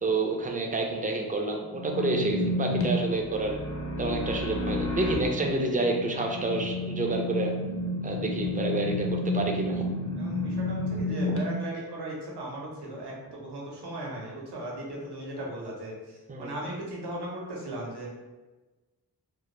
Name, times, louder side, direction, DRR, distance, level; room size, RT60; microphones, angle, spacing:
voice 1, 0.0-3.6 4.0-7.5 8.0-9.9 11.3-11.4 16.3-16.5, right 2 dB, 20° right, 2 dB, 0.4 m, -29 dB
sound 1, 1.7-11.4, left 2 dB, 35° left, 0.6 m, -31 dB
voice 2, 10.2-18.1, right 1 dB, 80° right, -3 dB, 0.8 m, -37 dB
2.1 x 2.0 x 2.9 m, 1.2 s
cardioid pair, 45°, 39 cm